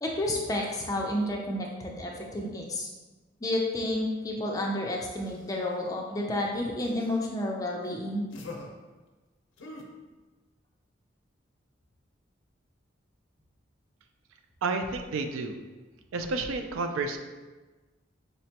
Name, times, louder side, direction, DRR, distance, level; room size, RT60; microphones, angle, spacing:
voice 1, 0.0-2.9 3.4-8.3, left 1 dB, 20° left, -1 dB, 0.4 m, -30 dB
sound 1, 5.2-5.9 6.8-7.2 7.8-8.0 8.3-8.7 9.6-9.8, left 2 dB, 75° left, 0.5 m, -45 dB
voice 2, 14.6-15.5 16.1-17.2, right 3 dB, 85° right, 6 dB, 0.3 m, -30 dB
5.0 x 2.1 x 2.8 m, 1.2 s
head